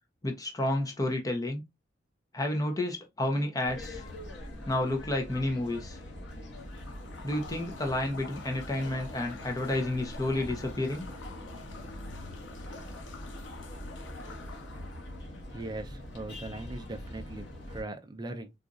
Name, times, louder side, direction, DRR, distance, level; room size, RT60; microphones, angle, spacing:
voice 1, 0.2-1.6 2.3-4.0 4.7-6.0 7.2-11.0, left 1 dB, 20° left, 0.6 m, -30 dB
sound 1, 3.6-17.8, left 1 dB, 70° left, 1.3 m, -43 dB
sound 2, 6.5-15.2, left 3 dB, 85° left, 0.6 m, -48 dB
voice 2, 15.5-18.5, right 2 dB, 20° right, 0.5 m, -40 dB
4.0 x 2.4 x 2.4 m
head